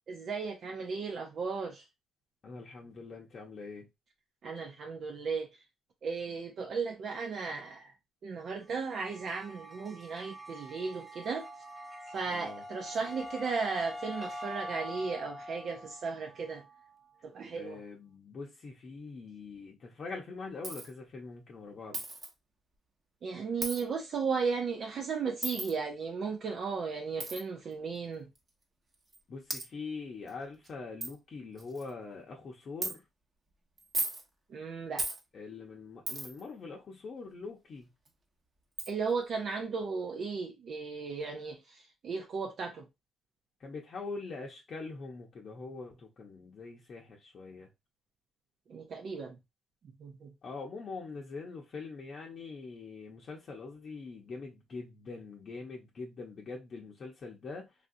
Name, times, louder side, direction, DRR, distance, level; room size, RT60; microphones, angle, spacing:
voice 1, 0.1-1.8 4.4-5.5 6.0-7.9 8.2-11.5 12.1-16.6 17.2-17.8 23.2-28.3 34.5-35.1 38.9-42.8 48.7-49.4 50.0-50.3, right 5 dB, 60° right, 0.6 m, -35 dB
voice 2, 2.4-3.9 12.3-12.6 17.5-22.0 29.3-33.0 35.3-37.9 43.6-47.7 50.4-57.7, left 4 dB, 50° left, 0.7 m, -43 dB
sound 1, 8.6-17.3, right 3 dB, 15° right, 0.7 m, -49 dB
Wind instrument woodwind instrument, 11.4-16.2, left 3 dB, 20° left, 0.7 m, -44 dB
Coin (dropping), 20.6-20.9 21.9-22.3 23.6-23.8 25.4-25.7 27.2-27.4 28.3-28.4 29.1-29.2 29.5-29.6 30.3-30.4 30.6-30.7 31.0-31.1 31.6-31.9 32.8-32.9 33.8-34.2 35.0-35.2 36.1-36.4 38.1-38.2 38.8-38.9, right 2 dB, 35° right, 1.0 m, -35 dB
3.4 x 2.5 x 2.6 m
cardioid pair, 90°, 0 cm